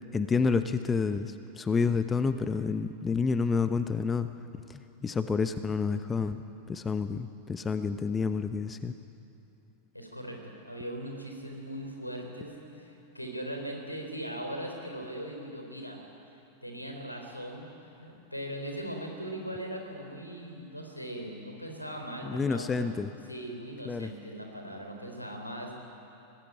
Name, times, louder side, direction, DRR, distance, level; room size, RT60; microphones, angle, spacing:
voice 1, 0.1-8.9 22.2-23.1 23.8-24.1, left 5 dB, 15° left, 11 dB, 0.9 m, -29 dB
voice 2, 9.9-16.0 16.6-17.7 17.9-22.8 23.3-25.8, right 1 dB, 90° left, 2 dB, 4.1 m, -39 dB
25.0 x 19.0 x 9.1 m, 2.8 s
figure-of-eight pair, 90°, 0 cm